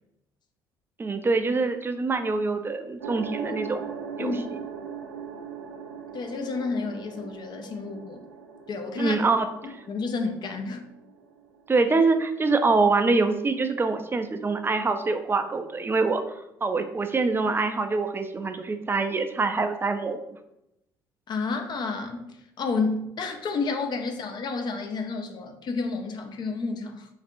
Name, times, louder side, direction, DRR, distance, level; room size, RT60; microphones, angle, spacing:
voice 1, 1.0-3.8 4.2-4.6 9.0-9.7 11.7-16.2 16.6-20.2, right 3 dB, 20° right, 7 dB, 0.4 m, -25 dB
sound 1, 3.0-11.7, right 6 dB, 80° right, 0.4 m, -40 dB
voice 2, 6.1-8.2 8.7-9.2 9.9-10.8 21.3-22.3 22.6-27.1, left 4 dB, 40° left, 5 dB, 0.5 m, -30 dB
4.1 x 3.3 x 2.5 m, 0.84 s
figure-of-eight pair, 50°, 11 cm